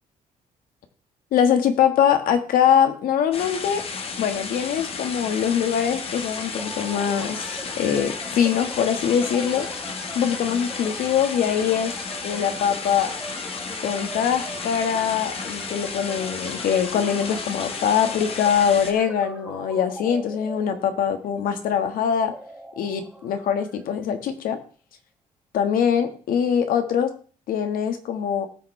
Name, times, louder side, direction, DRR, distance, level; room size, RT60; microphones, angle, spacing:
voice 1, 1.3-3.8 4.2-9.7 10.1-11.9 12.2-13.1 13.8-22.3 22.8-24.6 25.5-27.1 27.5-28.5, left 8 dB, 85° left, 7 dB, 1.5 m, -23 dB
sound 1, 3.3-18.9, left 5 dB, 45° left, 1.3 m, -33 dB
sound 2, 6.6-24.3, right 1 dB, 5° right, 1.5 m, -40 dB
18.5 x 6.4 x 3.3 m, 0.41 s
cardioid pair, 165°, 14 cm